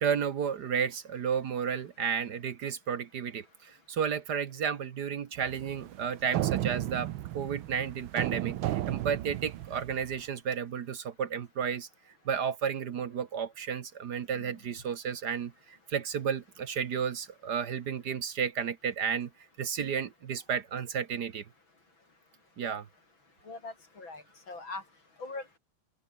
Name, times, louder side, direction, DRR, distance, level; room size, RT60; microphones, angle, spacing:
voice 1, 0.0-11.9 12.2-19.3 19.6-21.4 22.6-22.9, right 7 dB, 55° right, 1.6 m, -32 dB
sound 1, 5.4-10.2, right 14 dB, 80° right, 1.6 m, -34 dB
voice 2, 23.5-24.8 25.2-25.6, left 3 dB, 70° left, 6.3 m, -42 dB
open air
omnidirectional pair, 2.2 m